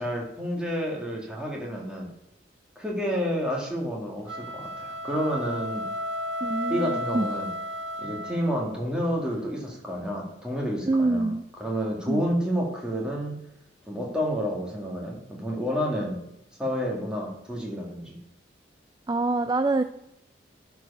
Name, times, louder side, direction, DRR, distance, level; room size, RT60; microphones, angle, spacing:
voice 1, 0.0-2.1 2.8-5.9 6.7-7.5 8.0-11.3 11.6-13.4 13.9-16.2 16.6-18.2, equal, 5° right, -2 dB, 2.1 m, -29 dB
sound 1, 4.2-8.8, equal, 70° right, 0.6 m, -33 dB
voice 2, 6.4-7.3 10.9-11.4 12.1-12.2 19.1-19.8, right 2 dB, 20° right, 9 dB, 0.3 m, -25 dB
12.0 x 4.7 x 5.5 m, 0.84 s
head